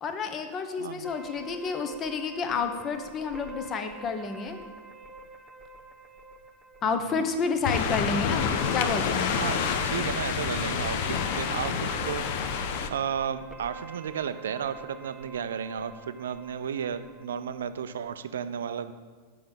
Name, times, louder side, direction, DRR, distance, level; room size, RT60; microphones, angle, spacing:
voice 1, 0.0-4.6 6.8-8.5 8.7-9.3, left 5 dB, 30° left, 8 dB, 0.9 m, -30 dB
voice 2, 0.8-1.1 2.5-2.6 6.8-7.2 9.3-9.6 9.8-18.9, right 8 dB, 65° right, 11 dB, 0.5 m, -34 dB
sound 1, 1.0-18.1, right 3 dB, ahead, 1.1 m, -47 dB
sound 2, 7.6-12.9, left 6 dB, 50° left, 0.7 m, -28 dB
8.4 x 5.0 x 7.4 m, 1.5 s
figure-of-eight pair, 90°, 0 cm